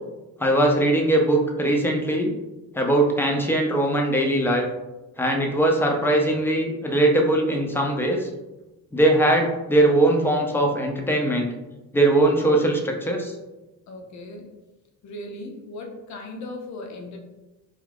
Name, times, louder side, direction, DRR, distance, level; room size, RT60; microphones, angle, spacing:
voice 1, 0.4-2.3 2.7-4.6 5.2-8.3 8.9-11.5 11.9-13.3, right 1 dB, 5° left, 1 dB, 0.5 m, -20 dB
voice 2, 13.9-14.5 15.0-17.2, left 2 dB, 55° left, 3 dB, 0.7 m, -37 dB
2.4 x 2.3 x 3.3 m, 1.1 s
cardioid pair, 90°, 34 cm